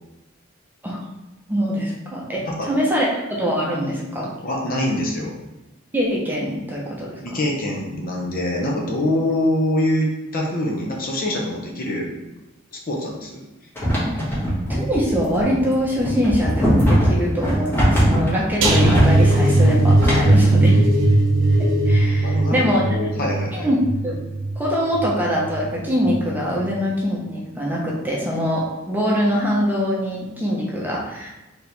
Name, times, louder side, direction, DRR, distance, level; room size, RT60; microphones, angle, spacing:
voice 1, 1.5-4.3 5.9-7.4 14.7-20.9 21.6-22.9 23.5-23.8 24.0-24.1 24.6-31.4, equal, 10° right, -4 dB, 0.8 m, -23 dB
voice 2, 4.4-5.3 7.2-12.1 12.7-13.4 22.2-23.7, left 1 dB, 45° left, -1 dB, 0.8 m, -24 dB
sound 1, 13.8-20.5, equal, 10° left, 1.3 m, -20 dB
sound 2, 18.6-25.7 26.0-26.3 26.7-26.8, right 1 dB, 65° right, 0.7 m, -18 dB
4.3 x 2.9 x 3.3 m, 1.0 s
head